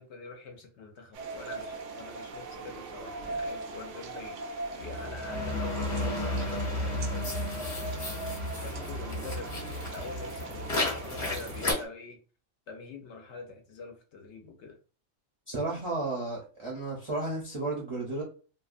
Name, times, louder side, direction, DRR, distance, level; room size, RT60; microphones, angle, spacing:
voice 1, 0.0-7.3 7.8-12.2 12.7-14.8, left 4 dB, 70° left, 0.8 m, -45 dB
sound 1, 1.1-11.9, right 3 dB, 70° right, 0.9 m, -40 dB
sound 2, 4.8-11.7, left 1 dB, 40° left, 1.0 m, -33 dB
voice 2, 15.5-18.2, right 2 dB, 35° right, 0.5 m, -33 dB
2.7 x 2.1 x 2.4 m
omnidirectional pair, 1.3 m